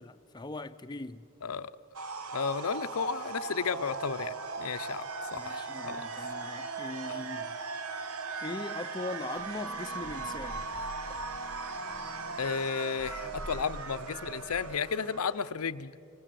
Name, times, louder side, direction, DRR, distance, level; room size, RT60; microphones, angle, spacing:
voice 1, 0.0-1.2 5.3-7.6 8.4-10.7, left 2 dB, 20° left, 0.6 m, -40 dB
sound 1, 1.9-15.5, right 4 dB, 90° right, 1.3 m, -38 dB
voice 2, 2.3-5.0 5.3-6.0 12.4-15.9, left 6 dB, 90° left, 0.7 m, -33 dB
sound 2, 9.3-14.8, equal, 20° right, 1.5 m, -48 dB
28.5 x 25.5 x 7.7 m
head